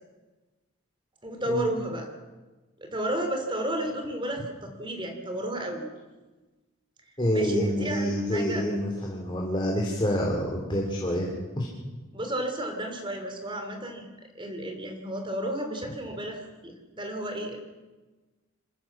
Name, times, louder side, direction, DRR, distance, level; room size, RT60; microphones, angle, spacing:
voice 1, 1.2-2.1 2.8-5.9 7.3-8.6 12.1-14.1 14.3-17.6, right 1 dB, 25° right, 5 dB, 3.3 m, -32 dB
voice 2, 7.2-11.3 11.6-11.7, equal, 25° left, -1 dB, 3.1 m, -27 dB
26.0 x 15.0 x 7.3 m, 1.2 s
head